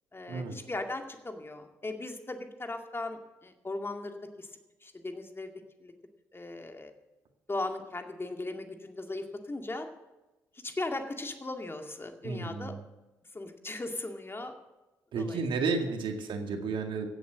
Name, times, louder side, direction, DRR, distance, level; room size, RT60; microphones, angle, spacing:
voice 1, 0.1-4.5 4.8-5.5 5.8-5.9 6.3-6.9 7.5-9.9 10.6-12.7 13.3-14.5 15.2-15.4, left 2 dB, 25° left, 5 dB, 2.2 m, -38 dB
voice 2, 12.2-12.8 15.1-17.1, right 4 dB, 60° right, 5 dB, 2.0 m, -32 dB
16.0 x 7.9 x 7.6 m, 1.1 s
hypercardioid pair, 45°, 9 cm